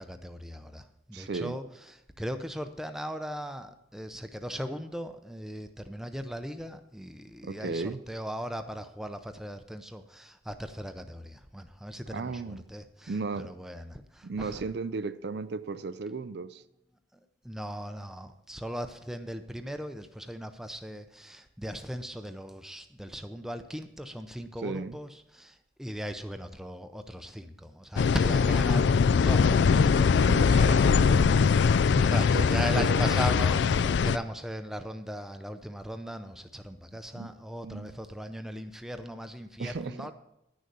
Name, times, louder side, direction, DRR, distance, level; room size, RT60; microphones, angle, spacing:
voice 1, 0.0-13.2 13.4-14.6 17.4-30.5 31.0-40.1, equal, ahead, 8 dB, 0.5 m, -38 dB
voice 2, 1.1-1.6 7.4-8.0 12.1-12.6 13.1-13.5 14.2-16.6 24.6-25.0 30.2-31.3 32.1-33.2 37.1-37.3 37.6-37.9 39.6-40.1, right 4 dB, 55° right, 14 dB, 0.4 m, -35 dB
sound 1, 28.0-34.2, left 5 dB, 65° left, 0.3 m, -22 dB
11.0 x 6.4 x 6.8 m, 0.85 s
head